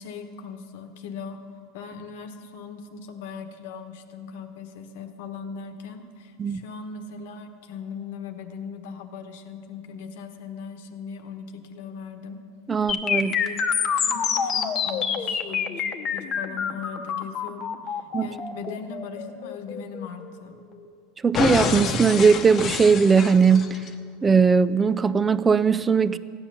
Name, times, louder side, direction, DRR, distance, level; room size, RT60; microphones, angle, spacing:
voice 1, 0.0-1.4 1.7-12.4 12.8-13.6 14.0-15.8 16.1-20.6, left 5 dB, 75° left, 1.2 m, -39 dB
voice 2, 12.7-13.3 18.1-18.3 21.2-23.8 24.2-26.2, right 5 dB, 20° right, 0.4 m, -19 dB
sound 1, 12.9-20.8 21.3-23.9, left 7 dB, 35° left, 0.9 m, -27 dB
15.0 x 9.8 x 6.9 m
supercardioid pair, 130°, 0 cm